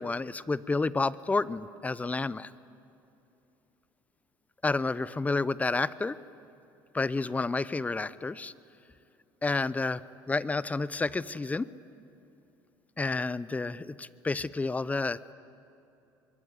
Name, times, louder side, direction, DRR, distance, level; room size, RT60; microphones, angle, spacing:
voice 1, 0.0-2.5 4.6-6.1 6.9-8.5 9.4-10.0 10.3-11.7 13.0-15.2, left 3 dB, 15° left, 17 dB, 0.7 m, -30 dB
24.5 x 22.5 x 9.6 m, 2.8 s
supercardioid pair, 100°, 9 cm